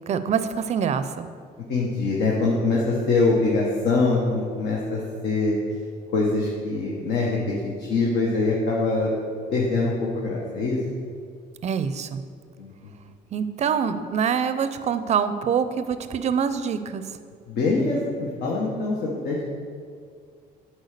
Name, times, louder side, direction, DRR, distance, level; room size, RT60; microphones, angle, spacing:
voice 1, 0.1-1.2 11.6-12.2 13.3-17.0, right 7 dB, 40° right, 11 dB, 0.5 m, -25 dB
voice 2, 1.7-5.6 6.1-7.4 7.8-9.1 9.5-10.8 12.6-12.7 17.5-19.4, left 3 dB, 70° left, -4 dB, 1.3 m, -23 dB
8.1 x 4.5 x 6.7 m, 2.1 s
cardioid pair, 110°, 17 cm